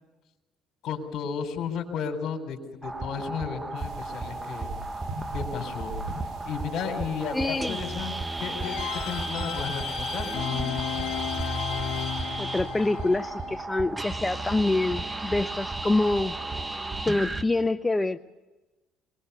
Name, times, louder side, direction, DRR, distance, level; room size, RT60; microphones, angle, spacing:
voice 1, 0.8-4.7 5.3-5.9 6.4-8.8 9.1-10.3, left 6 dB, 65° left, 5 dB, 4.0 m, -33 dB
sound 1, 2.8-17.4, right 2 dB, 15° right, 1.3 m, -34 dB
sound 2, 3.7-9.3, right 2 dB, 65° right, 6.8 m, -42 dB
voice 2, 7.3-7.8 12.4-16.3 17.1-18.2, left 2 dB, 15° left, 9 dB, 0.6 m, -26 dB
sound 3, 8.6-13.6, left 12 dB, 80° left, 1.1 m, -34 dB
22.5 x 21.0 x 6.9 m, 1.1 s
supercardioid pair, 90°, 0 cm